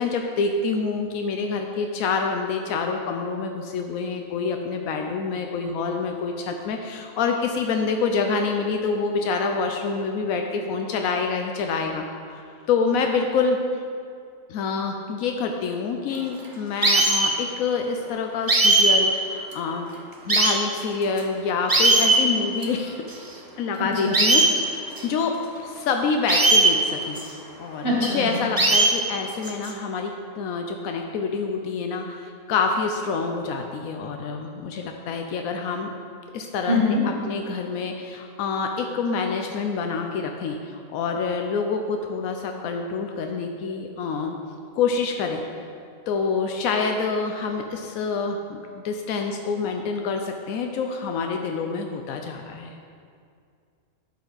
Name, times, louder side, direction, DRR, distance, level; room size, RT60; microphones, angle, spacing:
voice 1, 0.0-12.4 12.7-13.6 14.5-19.9 20.3-23.0 23.6-27.2 27.6-35.9 36.3-36.8 37.0-44.4 44.7-45.4 46.1-52.8, left 4 dB, 85° left, 3 dB, 1.0 m, -27 dB
sound 1, 16.8-17.3 18.5-19.0 19.5-19.6 20.3-20.5 21.2-21.3 21.7-22.2 22.6-22.7 23.1-23.2 24.1-24.5 25.0-25.1 26.3-26.7 27.2-27.3 28.6-29.0 29.4-29.7, right 2 dB, 25° right, 0.4 m, -18 dB
voice 2, 23.8-24.1 27.8-28.3 36.7-37.0, left 2 dB, 40° left, -4 dB, 1.7 m, -23 dB
12.0 x 5.3 x 3.9 m, 2.3 s
omnidirectional pair, 1.4 m